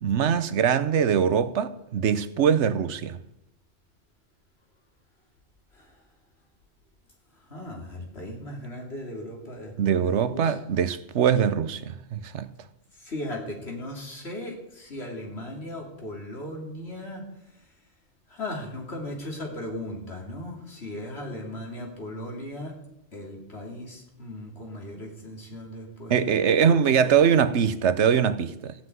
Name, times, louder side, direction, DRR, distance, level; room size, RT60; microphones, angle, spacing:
voice 1, 0.0-3.2 9.8-12.5 26.1-28.7, right 7 dB, 75° right, 1.0 m, -22 dB
voice 2, 7.5-10.4 13.0-17.2 18.3-22.7 23.1-27.2, left 1 dB, 65° left, 3.2 m, -37 dB
15.5 x 5.9 x 9.3 m
omnidirectional pair, 1.2 m